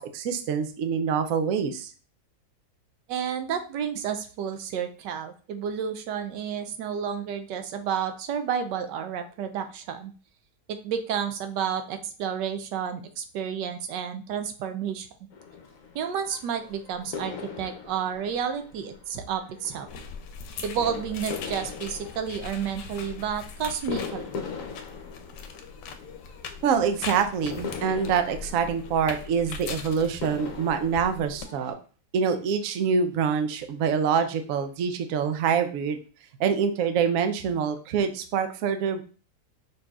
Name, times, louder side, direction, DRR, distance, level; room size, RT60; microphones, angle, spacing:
voice 1, 0.0-1.9 26.6-31.7 32.1-36.0 36.4-39.0, right 6 dB, 65° right, 8 dB, 0.9 m, -25 dB
voice 2, 3.1-10.1 10.7-15.1 15.9-19.9 20.6-24.4, right 8 dB, 80° right, 8 dB, 1.2 m, -31 dB
sound 1, 15.3-31.7, left 6 dB, 60° left, 1.0 m, -41 dB
sound 2, 19.9-31.5, left 5 dB, 90° left, 1.3 m, -41 dB
5.4 x 4.1 x 2.4 m, 0.37 s
omnidirectional pair, 1.9 m